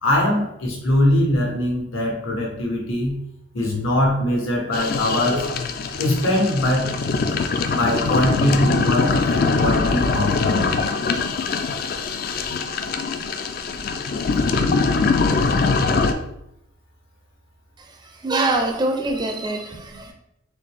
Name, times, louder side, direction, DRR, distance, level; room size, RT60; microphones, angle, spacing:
voice 1, 0.0-3.2 3.5-5.5 6.0-6.9 7.7-10.7, left 1 dB, 75° left, -1 dB, 1.3 m, -22 dB
sound 1, 4.7-16.1, left 4 dB, 45° left, 0.3 m, -22 dB
voice 2, 17.8-20.1, right 2 dB, 20° right, 3 dB, 0.4 m, -24 dB
4.1 x 3.1 x 3.4 m, 0.81 s
head